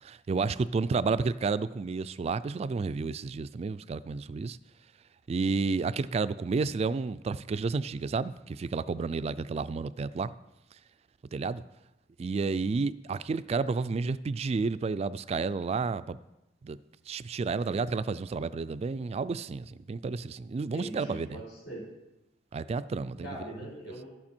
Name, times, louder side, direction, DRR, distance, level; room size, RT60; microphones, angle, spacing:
voice 1, 0.0-4.6 5.3-10.3 11.3-11.6 12.2-16.2 16.6-16.8 17.1-21.4 22.5-23.4, right 4 dB, 35° right, 0.3 m, -31 dB
voice 2, 20.7-21.8 23.2-24.1, right 1 dB, 85° left, 4.4 m, -41 dB
11.5 x 8.6 x 4.4 m
head